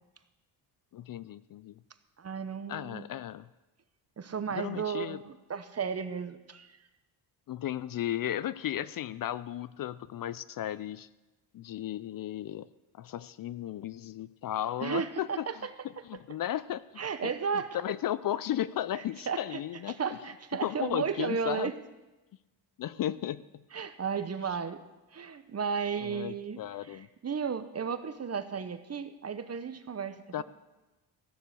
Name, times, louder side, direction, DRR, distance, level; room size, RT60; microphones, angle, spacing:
voice 1, 0.9-1.8 2.7-3.5 4.5-5.2 7.5-11.1 11.5-12.7 12.9-15.5 16.1-16.8 17.2-17.3 17.7-20.0 20.6-21.7 22.8-23.4 26.0-27.1 30.3-30.4, left 12 dB, 50° left, 17 dB, 0.5 m, -34 dB
voice 2, 2.2-3.1 4.2-6.8 14.8-15.7 17.0-17.8 19.3-19.6 19.9-21.7 23.7-24.8 25.1-30.4, right 6 dB, 35° right, 11 dB, 1.0 m, -34 dB
15.0 x 6.7 x 8.3 m, 1.1 s
cardioid pair, 80°, 44 cm